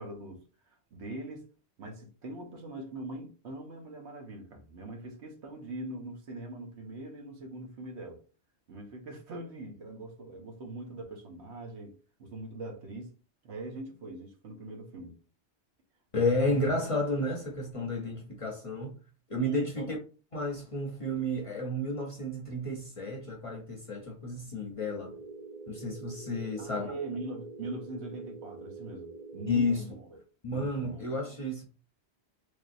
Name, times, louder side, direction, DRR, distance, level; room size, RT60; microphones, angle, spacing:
voice 1, 0.0-1.5 1.8-8.2 8.7-11.9 12.2-13.1 13.4-15.2 16.4-16.6 19.4-19.7 26.6-30.2 30.5-31.1, right 2 dB, 85° right, 1.1 m, -42 dB
voice 2, 16.1-19.0 19.3-20.0 20.3-25.1 25.7-26.9 29.5-29.8 30.4-31.6, left 1 dB, 40° left, 0.5 m, -31 dB
sound 1, 24.7-29.7, right 4 dB, 45° right, 0.7 m, -45 dB
3.2 x 2.7 x 2.5 m
omnidirectional pair, 1.1 m